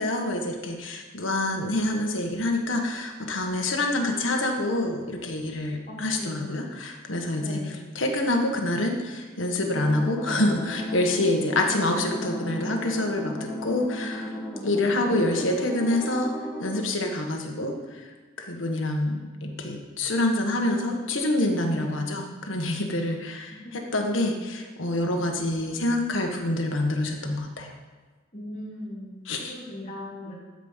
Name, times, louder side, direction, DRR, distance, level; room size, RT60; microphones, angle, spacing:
voice 1, 0.0-7.6 7.9-14.3 14.6-16.3 16.6-23.6 23.9-27.7 29.3-29.5, left 1 dB, 75° left, 2 dB, 1.6 m, -26 dB
voice 2, 5.9-6.6 7.4-7.9 21.6-22.0 23.6-23.7 28.3-29.1 29.4-30.3, left 1 dB, 35° left, -7 dB, 3.3 m, -38 dB
sound 1, 9.7-16.8, equal, 5° right, 2.6 m, -35 dB
12.5 x 5.2 x 7.3 m, 1.4 s
head